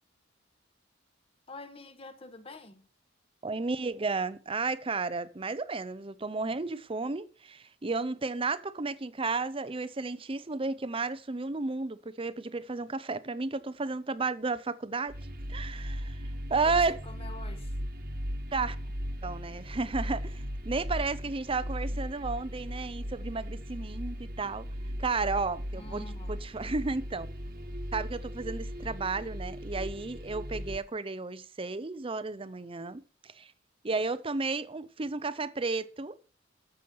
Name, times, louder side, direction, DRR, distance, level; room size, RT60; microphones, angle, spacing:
voice 1, 1.5-2.9 16.6-17.8 25.7-26.3, left 2 dB, 30° left, 1.3 m, -47 dB
voice 2, 3.4-15.2 15.5-17.0 18.5-18.8 19.2-24.7 25.0-27.3 27.9-33.5 33.8-36.1, right 3 dB, 30° right, 0.6 m, -33 dB
sound 1, 15.1-30.8, equal, 50° right, 1.3 m, -37 dB
13.0 x 7.0 x 5.6 m
head